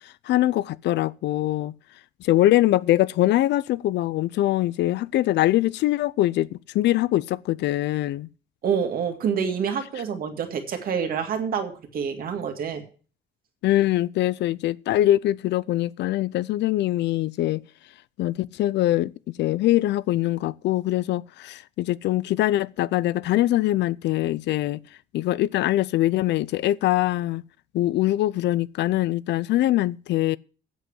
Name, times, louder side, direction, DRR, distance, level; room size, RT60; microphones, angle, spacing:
voice 1, 0.3-1.7 2.2-8.3 13.6-17.6 18.2-19.1 19.4-24.8 25.1-27.4 27.7-30.4, left 15 dB, 80° left, 0.5 m, -23 dB
voice 2, 8.6-12.8, right 7 dB, 55° right, 2.1 m, -27 dB
8.2 x 7.7 x 8.7 m
cardioid pair, 165°, 18 cm